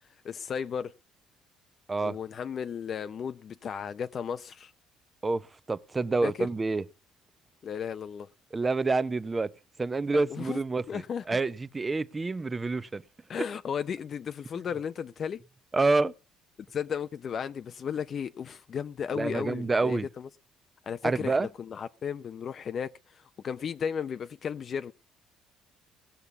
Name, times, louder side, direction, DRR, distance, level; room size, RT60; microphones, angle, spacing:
voice 1, 0.2-0.9 2.0-4.7 6.2-6.5 7.6-8.3 10.1-10.6 10.9-11.2 13.3-15.4 16.7-20.3 20.9-24.9, left 7 dB, 45° left, 0.6 m, -34 dB
voice 2, 5.2-6.8 8.5-9.5 9.8-13.0 15.7-16.1 19.1-20.1 21.0-21.5, right 3 dB, 20° right, 0.8 m, -28 dB
18.0 x 6.7 x 7.0 m
cardioid pair, 115°, 0 cm